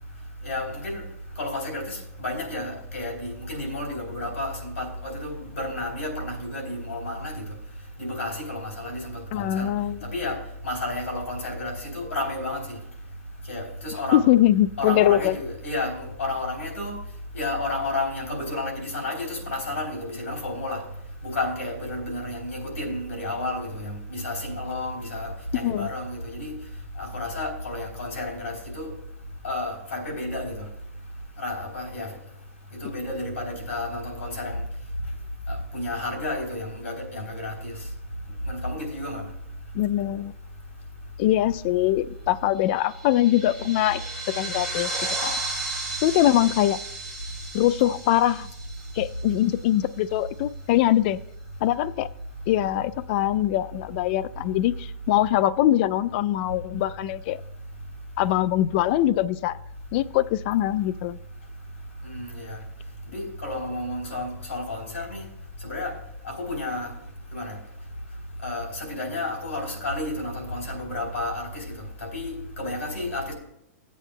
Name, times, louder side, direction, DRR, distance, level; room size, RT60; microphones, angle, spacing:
voice 1, 0.4-1.0 1.4-7.5 8.0-9.7 10.0-10.4 10.6-12.8 13.5-14.2 14.8-17.0 17.3-20.8 21.2-26.6 27.0-28.9 29.4-30.6 31.4-32.1 32.7-34.6 35.5-37.7 38.5-39.2 62.0-62.6 63.1-65.3 65.6-65.9 66.2-66.9 67.3-67.6 68.4-71.7 72.0-73.3, left 2 dB, 85° left, 0 dB, 3.3 m, -31 dB
voice 2, 9.3-10.1 14.1-15.4 25.6-25.9 39.7-40.3 41.2-44.0 44.4-44.9 45.2-45.4 46.0-46.8 47.5-48.5 49.0-51.2 51.6-52.1 52.5-57.4 58.2-59.6 59.9-61.2, left 13 dB, 45° left, 18 dB, 0.3 m, -22 dB
sound 1, 42.7-49.5, right 2 dB, ahead, 3.8 m, -34 dB
15.5 x 8.3 x 2.2 m, 0.79 s
hypercardioid pair, 135°, 8 cm